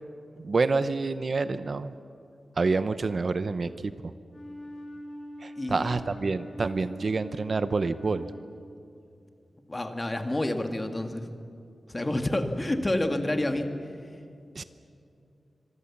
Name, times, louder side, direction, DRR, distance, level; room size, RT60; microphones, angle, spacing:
voice 1, 0.4-1.9 2.6-3.7 5.4-8.3 14.5-14.6, right 3 dB, 50° right, 12 dB, 0.7 m, -27 dB
Wind instrument woodwind instrument, 4.2-8.8, equal, 50° left, 5.5 m, -43 dB
voice 2, 5.6-6.0 9.7-11.3 11.9-13.7, left 1 dB, 20° left, 5 dB, 1.8 m, -28 dB
26.0 x 23.5 x 7.2 m, 2.5 s
wide cardioid pair, 140°, 0 cm